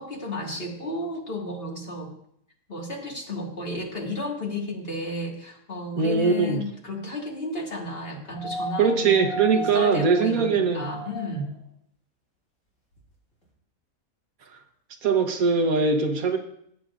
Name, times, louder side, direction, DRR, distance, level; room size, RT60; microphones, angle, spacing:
voice 1, 0.0-2.1 2.7-9.1 9.5-11.5, left 1 dB, 40° left, -1 dB, 2.1 m, -33 dB
voice 2, 6.0-6.6 8.8-10.8 15.0-16.4, right 5 dB, 85° right, 5 dB, 1.5 m, -21 dB
sound 1, 8.3-11.6 13.0-13.1, equal, 75° left, 3.6 m, -35 dB
16.5 x 8.6 x 2.5 m, 0.70 s
omnidirectional pair, 1.5 m